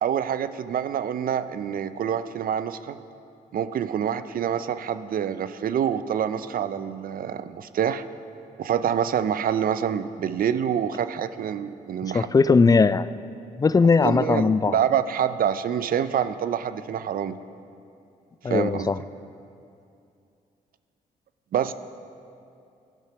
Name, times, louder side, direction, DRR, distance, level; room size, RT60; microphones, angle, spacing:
voice 1, 0.0-3.0 3.5-8.0 8.6-12.3 14.0-17.4 18.4-19.0 21.5-21.7, right 9 dB, 60° right, 12 dB, 0.5 m, -26 dB
voice 2, 12.1-13.1 13.6-14.8 18.4-19.0, left 4 dB, 20° left, 16 dB, 0.3 m, -19 dB
14.5 x 5.6 x 5.9 m, 2.5 s
supercardioid pair, 50°, 17 cm